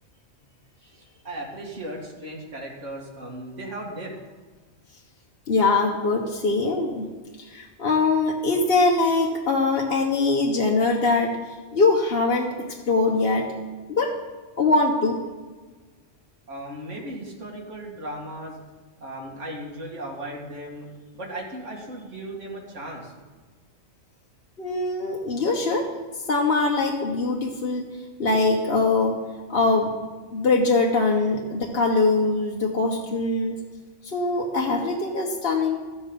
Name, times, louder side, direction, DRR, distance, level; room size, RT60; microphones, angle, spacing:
voice 1, 0.8-4.1 16.5-18.6 19.0-20.9 21.1-23.1, right 1 dB, 85° right, -2 dB, 2.4 m, -36 dB
voice 2, 5.5-7.1 7.4-11.4 11.7-12.5 12.9-13.5 13.9-14.1 14.6-15.2 24.6-25.9 26.3-27.9 28.2-29.2 29.5-29.9 30.3-33.6 34.1-35.8, left 3 dB, 55° left, -1 dB, 1.3 m, -22 dB
13.5 x 8.6 x 5.3 m, 1.3 s
omnidirectional pair, 1.2 m